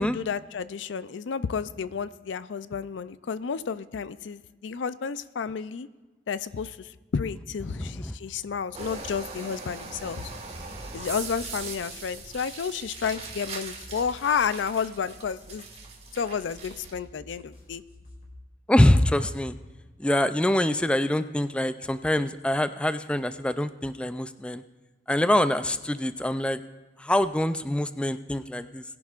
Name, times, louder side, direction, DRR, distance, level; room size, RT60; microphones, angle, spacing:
voice 1, 0.0-5.9 6.3-10.3 10.9-15.7 16.1-17.8, left 6 dB, 85° left, 15 dB, 0.4 m, -31 dB
voice 2, 7.7-8.1 18.7-19.5 20.0-24.6 25.1-26.6 27.0-28.8, left 1 dB, 5° left, 11 dB, 0.3 m, -24 dB
sound 1, 8.7-17.0, right 4 dB, 35° right, 1.6 m, -40 dB
sound 2, 12.8-18.4, left 1 dB, 50° left, 3.7 m, -51 dB
20.5 x 11.0 x 2.5 m, 1.3 s
head